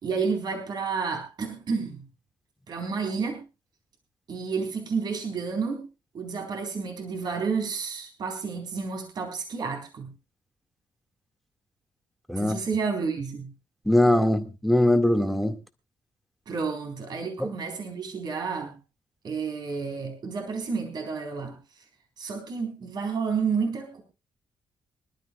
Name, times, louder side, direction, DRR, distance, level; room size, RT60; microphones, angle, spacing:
voice 1, 0.0-2.0 2.7-3.4 4.3-5.8 6.1-10.1 12.4-13.5 16.5-18.7 19.2-21.8 22.2-24.0, right 5 dB, 55° right, 4.0 m, -30 dB
voice 2, 12.3-12.6 13.9-15.5 17.4-17.5, left 1 dB, ahead, 1.9 m, -21 dB
25.5 x 12.5 x 2.3 m
cardioid pair, 105°, 9 cm